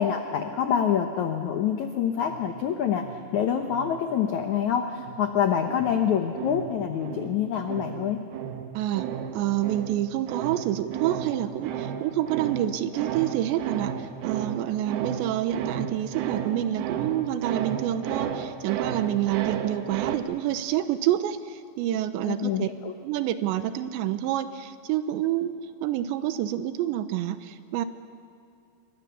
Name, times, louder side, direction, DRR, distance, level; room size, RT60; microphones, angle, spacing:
voice 1, 0.0-8.2 22.2-22.9, left 8 dB, 90° left, 6 dB, 1.6 m, -26 dB
sound 1, 2.2-4.6 5.0-20.2, right 8 dB, 70° right, 2.9 m, -34 dB
voice 2, 8.7-9.1 9.3-22.7 23.0-27.9, right 12 dB, 85° right, 11 dB, 3.2 m, -28 dB
28.0 x 22.5 x 7.0 m, 2.6 s
omnidirectional pair, 5.1 m